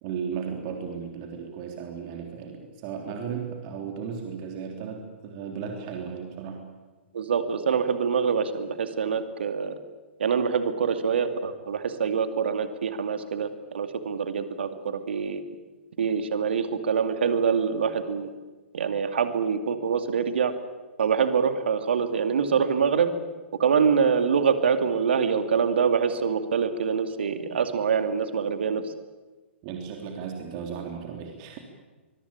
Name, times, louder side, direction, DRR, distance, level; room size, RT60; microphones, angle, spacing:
voice 1, 0.0-6.7 29.6-31.6, right 6 dB, 40° right, 3 dB, 3.5 m, -35 dB
voice 2, 7.1-9.7 10.2-15.4 16.0-18.3 18.7-20.5 21.0-23.1 23.6-28.8, right 6 dB, 65° right, 9 dB, 2.5 m, -25 dB
25.0 x 22.0 x 8.8 m, 1.3 s
figure-of-eight pair, 115°, 7 cm